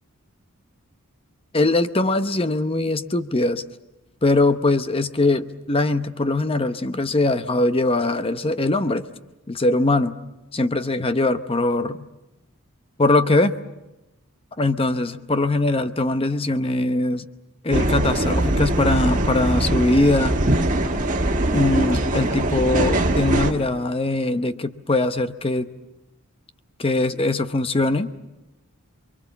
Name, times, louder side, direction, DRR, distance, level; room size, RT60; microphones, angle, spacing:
voice 1, 1.5-3.6 4.2-9.0 9.5-10.2 10.5-12.0 13.0-13.5 14.6-17.2 17.6-20.4 21.5-25.7 26.8-28.1, left 2 dB, 25° left, 11 dB, 0.9 m, -21 dB
sound 1, 17.7-23.5, right 1 dB, 35° right, 2.0 m, -21 dB
28.0 x 23.0 x 7.1 m, 0.97 s
head